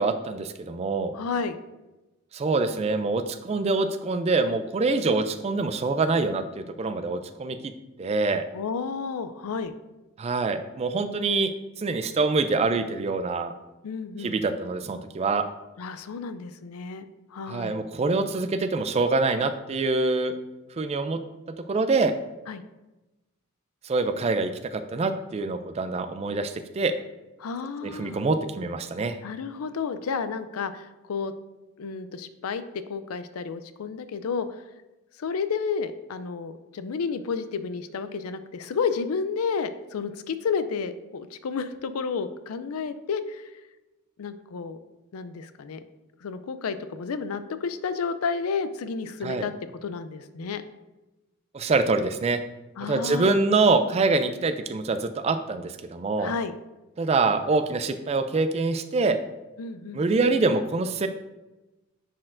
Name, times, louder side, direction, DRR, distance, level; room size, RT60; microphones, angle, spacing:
voice 1, 0.0-1.1 2.3-7.6 8.0-8.4 10.2-11.5 11.8-13.5 14.2-15.4 17.5-20.4 20.7-21.2 21.7-22.2 23.8-26.9 27.8-29.2 49.2-49.4 51.5-52.4 52.8-56.3 57.0-59.2 59.9-61.1, right 3 dB, 30° right, 10 dB, 0.3 m, -25 dB
voice 2, 1.1-1.6 8.5-9.7 13.8-14.4 15.8-17.8 22.5-22.6 27.4-28.2 29.2-31.3 31.8-34.5 35.2-43.5 44.2-44.8 45.1-45.8 46.2-49.5 49.8-50.6 52.8-53.4 56.2-56.5 59.6-60.0, left 5 dB, 85° left, 12 dB, 0.4 m, -31 dB
9.8 x 4.2 x 2.6 m, 1.1 s
head